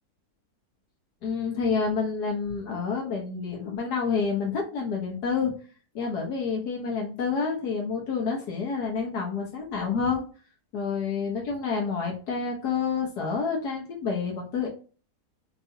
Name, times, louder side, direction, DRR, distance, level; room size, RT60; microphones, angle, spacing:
voice 1, 1.2-5.5 5.9-10.2 10.7-14.7, left 5 dB, 85° left, -1 dB, 1.6 m, -28 dB
4.6 x 3.0 x 2.7 m, 0.37 s
omnidirectional pair, 1.7 m